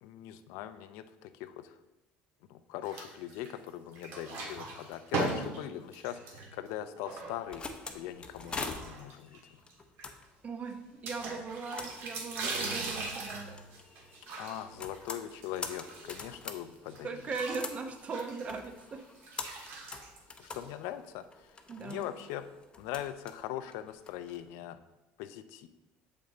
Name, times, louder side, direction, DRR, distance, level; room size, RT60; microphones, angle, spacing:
voice 1, 0.0-1.7 2.5-7.7 7.9-9.4 14.4-17.2 20.4-21.2 21.8-22.5 22.8-24.8 25.2-25.7, left 12 dB, 75° left, 11 dB, 0.5 m, -41 dB
sound 1, 2.8-3.7 3.9-7.8 8.4-9.4 9.7-9.8 10.0-10.1 11.1-16.5 16.9-20.9, right 3 dB, 65° right, 1.6 m, -40 dB
sound 2, 7.2-24.4, left 4 dB, 20° left, 0.7 m, -46 dB
voice 2, 10.4-13.6 17.0-19.0 21.7-22.1, right 4 dB, 30° right, 6 dB, 0.8 m, -39 dB
7.0 x 5.4 x 3.8 m, 1.0 s
cardioid pair, 120°, 4 cm